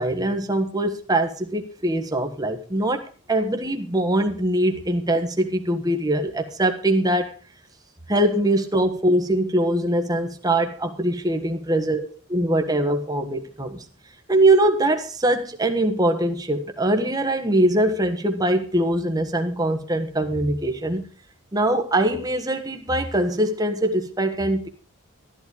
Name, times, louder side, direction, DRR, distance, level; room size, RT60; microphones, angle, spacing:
voice 1, 0.0-3.0 3.3-7.3 8.1-12.0 12.3-13.8 14.3-21.0 21.5-24.7, right 1 dB, 20° right, 1.4 m, -22 dB
14.0 x 11.0 x 5.0 m
head